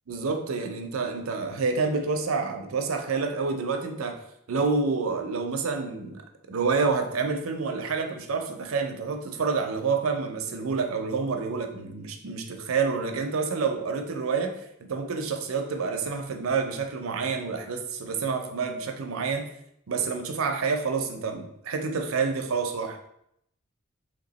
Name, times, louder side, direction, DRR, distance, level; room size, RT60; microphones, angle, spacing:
voice 1, 0.1-4.2 4.5-6.2 6.5-19.5 19.9-23.0, right 4 dB, 85° right, 5 dB, 0.5 m, -28 dB
3.2 x 2.9 x 4.0 m, 0.76 s
head